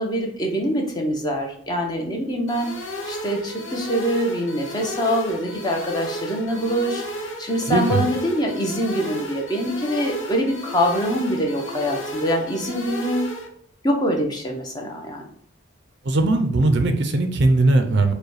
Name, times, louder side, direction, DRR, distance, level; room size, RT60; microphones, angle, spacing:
voice 1, 0.0-2.7 3.1-13.3 13.8-15.3, equal, 20° left, 1 dB, 0.8 m, -24 dB
sound 1, 2.5-13.5, left 1 dB, 65° left, 0.9 m, -33 dB
voice 2, 7.7-8.0 16.0-18.1, right 2 dB, 55° right, 6 dB, 0.6 m, -19 dB
4.8 x 2.3 x 4.8 m, 0.64 s
head